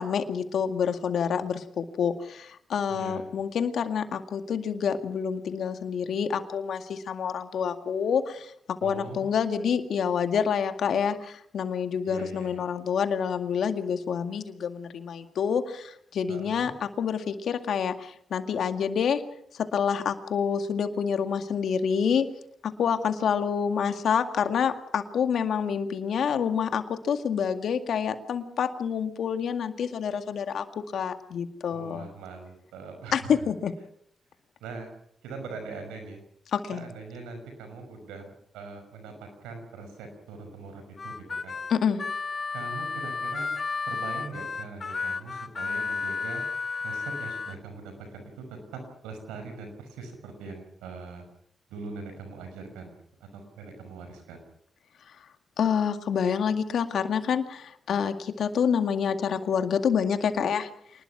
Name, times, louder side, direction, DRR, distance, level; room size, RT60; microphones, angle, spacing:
voice 1, 0.0-8.5 8.8-19.2 19.5-22.3 22.6-30.6 30.9-32.1 33.1-33.7 36.5-36.8 41.7-42.0 55.6-60.7, left 7 dB, 75° left, 7 dB, 2.0 m, -27 dB
voice 2, 2.9-3.3 8.8-9.2 12.0-12.6 16.3-16.7 31.7-33.3 34.6-34.9 35.2-36.2 36.7-39.1 39.4-41.6 42.5-43.5 43.8-46.4 46.8-51.3 51.7-53.0 53.3-54.4, right 4 dB, 90° right, 6 dB, 5.8 m, -41 dB
Harmonica, 41.0-47.6, left 4 dB, 50° left, 1.5 m, -32 dB
27.0 x 20.0 x 6.0 m, 0.70 s
supercardioid pair, 40°, 0 cm